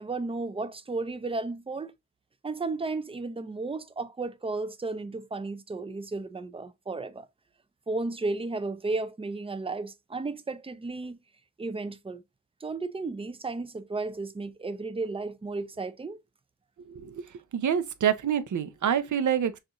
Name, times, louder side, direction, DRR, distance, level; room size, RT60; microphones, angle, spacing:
voice 1, 0.0-1.9 2.4-7.3 7.9-11.2 11.6-12.2 12.6-16.2, right 3 dB, 20° right, 0.4 m, -33 dB
voice 2, 16.9-17.3 17.5-19.6, right 9 dB, 85° right, 0.6 m, -27 dB
6.4 x 2.4 x 2.9 m
wide cardioid pair, 145°, 29 cm